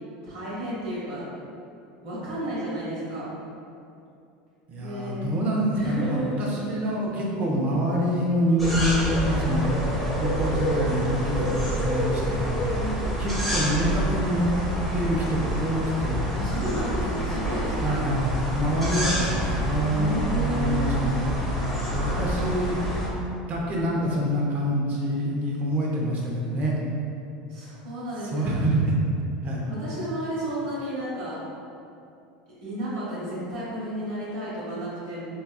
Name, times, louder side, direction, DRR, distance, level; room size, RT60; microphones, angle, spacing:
voice 1, 0.2-1.2 2.0-3.3 4.8-5.3 5.8-6.4 12.7-13.2 16.3-18.0 19.9-20.9 27.5-28.5 29.7-31.4 32.6-35.2, right 1 dB, 65° right, -9 dB, 1.2 m, -32 dB
voice 2, 4.7-9.7 10.2-12.6 13.2-14.5 14.9-16.3 17.8-21.5 21.9-22.9 23.5-26.7 28.2-29.0 29.4-29.6, equal, 40° right, -3 dB, 0.7 m, -26 dB
sound 1, 8.6-23.1, right 1 dB, ahead, 0.9 m, -28 dB
4.0 x 2.3 x 2.3 m, 2.6 s
supercardioid pair, 105°, 4 cm